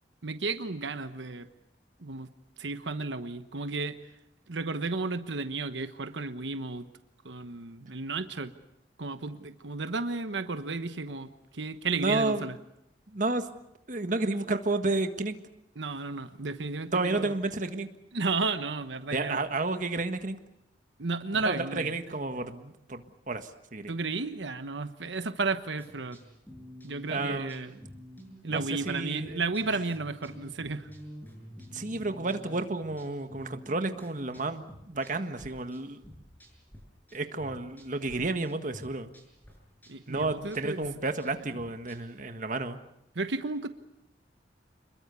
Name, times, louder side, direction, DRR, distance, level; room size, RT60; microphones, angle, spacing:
voice 1, 0.2-1.5 2.0-2.3 2.6-4.0 4.5-6.9 7.2-8.5 9.0-12.5 15.8-17.3 18.1-19.4 21.0-21.9 23.9-26.2 26.8-27.7 28.4-30.9 39.9-40.8 43.2-43.7, right 3 dB, 90° right, 10 dB, 1.2 m, -33 dB
voice 2, 11.9-12.5 13.1-13.5 13.9-15.4 16.9-17.9 19.1-20.4 21.3-23.9 27.1-27.8 28.4-29.4 29.7-29.8 31.7-36.0 37.1-39.2 40.1-42.8, right 2 dB, 45° right, 8 dB, 1.6 m, -31 dB
sound 1, 25.8-36.8 37.1-38.2 38.4-42.2, equal, 10° left, 7.0 m, -49 dB
28.0 x 21.5 x 7.0 m, 0.82 s
head